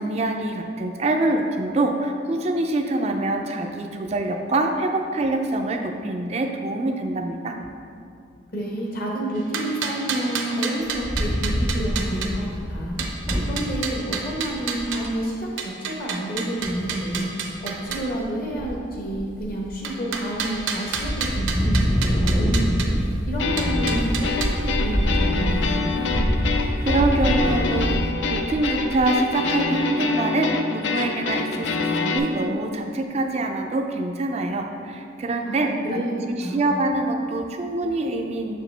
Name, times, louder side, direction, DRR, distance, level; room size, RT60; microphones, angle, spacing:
voice 1, 0.0-7.6 26.8-36.0 36.3-38.5, right 2 dB, 35° right, 4 dB, 0.3 m, -25 dB
voice 2, 8.5-13.0 13.4-17.3 17.6-22.9 23.3-26.2 35.4-36.1 36.4-36.7, right 1 dB, 50° left, -2 dB, 1.0 m, -29 dB
sound 1, 9.3-12.3 13.0-15.1 15.6-18.1 19.8-22.9 23.6-24.5, right 5 dB, 80° right, 0.6 m, -30 dB
Wind, 10.8-13.9 14.5-14.6 14.8-15.1 16.6-17.2 17.7-18.2 18.5-19.7 20.2-20.6 20.9-29.1, equal, 25° left, 0.8 m, -25 dB
sound 2, 23.4-32.2, left 4 dB, 65° left, 0.4 m, -26 dB
6.9 x 4.8 x 3.3 m, 2.4 s
head